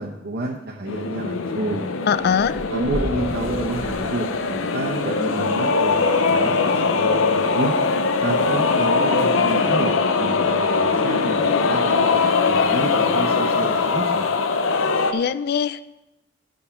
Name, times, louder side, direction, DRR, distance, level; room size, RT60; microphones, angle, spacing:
voice 1, 0.0-1.9 2.7-7.7 8.2-12.2 12.5-14.3, right 2 dB, 55° right, -3 dB, 0.9 m, -29 dB
sound 1, 0.9-15.1, left 4 dB, 90° left, 0.7 m, -21 dB
voice 2, 2.1-2.6 15.1-15.8, left 7 dB, 55° left, 15 dB, 0.4 m, -21 dB
sound 2, 2.2-4.9, equal, 10° right, 1.6 m, -33 dB
11.0 x 5.2 x 5.8 m, 0.96 s
head